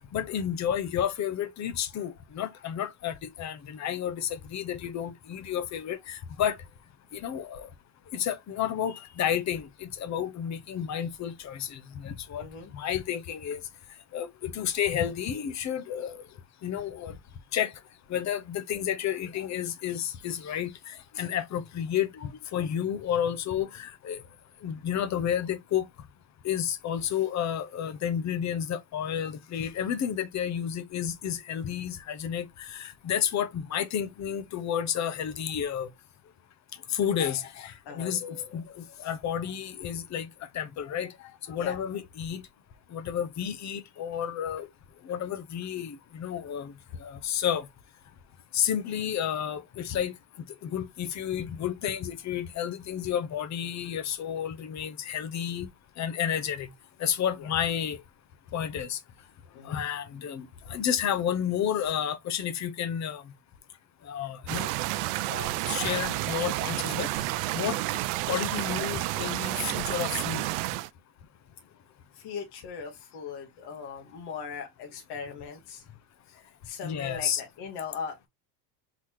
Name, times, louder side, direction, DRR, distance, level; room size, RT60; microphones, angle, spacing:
voice 1, 0.1-6.6 7.1-7.7 8.1-12.5 12.7-13.6 14.1-16.2 16.6-17.2 17.5-17.7 18.1-24.2 24.6-25.9 26.4-35.9 36.9-40.3 40.5-41.1 41.5-42.4 42.9-44.7 45.0-46.7 47.0-47.7 48.5-50.1 50.6-55.7 56.0-56.7 57.0-58.0 58.5-59.0 59.6-63.2 64.0-64.7 65.3-67.3 67.5-67.8 68.3-70.4 76.8-77.4, left 9 dB, 35° left, 0.9 m, -31 dB
voice 2, 12.4-12.7 37.8-38.2 41.6-41.9 57.4-57.5 59.5-59.8 72.1-75.8 76.3-78.3, left 6 dB, 50° left, 1.5 m, -40 dB
sound 1, 64.5-70.9, right 17 dB, 70° right, 0.6 m, -30 dB
4.0 x 4.0 x 3.0 m
supercardioid pair, 110°, 48 cm